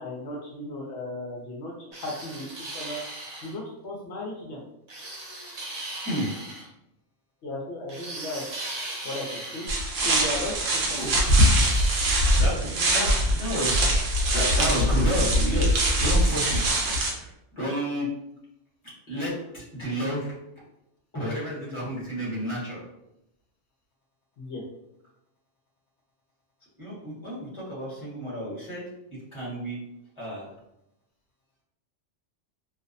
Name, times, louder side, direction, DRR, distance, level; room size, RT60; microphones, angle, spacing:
voice 1, 0.0-3.0 3.4-4.6 7.4-8.4 9.0-9.7 10.0-11.2 24.4-24.6, left 1 dB, 65° left, -2 dB, 0.8 m, -36 dB
sound 1, 1.9-3.6 4.9-6.7 7.9-9.9 10.8-12.5, right 1 dB, 50° right, 0.5 m, -38 dB
sound 2, 9.7-17.1, right 1 dB, 80° right, 1.0 m, -22 dB
voice 2, 12.4-13.9 14.3-16.7 17.0-18.1 19.1-20.3 21.1-22.8 26.8-28.8 29.3-29.8 30.2-30.5, equal, 25° left, -6 dB, 0.9 m, -31 dB
2.6 x 2.0 x 2.5 m, 0.83 s
omnidirectional pair, 1.3 m